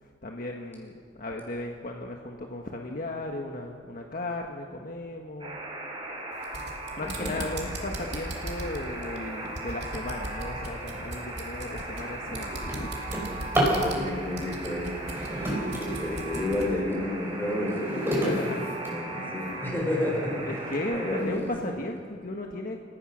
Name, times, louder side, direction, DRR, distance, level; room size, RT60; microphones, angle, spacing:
voice 1, 0.0-5.6 6.9-12.9 18.1-18.7 20.4-22.8, left 1 dB, 50° left, 2 dB, 1.4 m, -35 dB
Alarm, 5.4-21.2, right 2 dB, 30° right, 4.0 m, -38 dB
sound 1, 6.3-16.7, right 1 dB, 65° right, 3.0 m, -39 dB
voice 2, 7.0-7.4 13.7-14.9 15.3-15.5 15.8-18.5 18.8-20.4 20.9-21.5, left 1 dB, 10° left, -2 dB, 6.3 m, -31 dB
Drawer open or close, 11.2-11.4 11.9-13.9 14.9-16.5 17.1-19.5 20.1-20.2 20.7-20.8 21.2-21.6, equal, 15° right, 5.7 m, -31 dB
28.5 x 16.5 x 6.3 m, 2.2 s
head